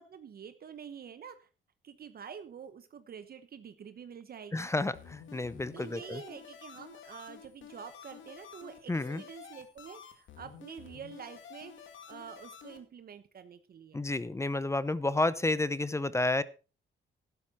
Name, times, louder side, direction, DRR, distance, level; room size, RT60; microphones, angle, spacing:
voice 1, 0.0-1.5 1.8-4.7 5.7-14.0, right 7 dB, 50° right, 11 dB, 1.0 m, -47 dB
voice 2, 4.5-6.2 8.9-9.2 13.9-16.4, left 2 dB, 15° left, 18 dB, 0.7 m, -30 dB
sound 1, 4.9-12.8, left 7 dB, 75° left, 2.6 m, -51 dB
12.0 x 11.0 x 4.2 m, 0.33 s
cardioid pair, 90°, 20 cm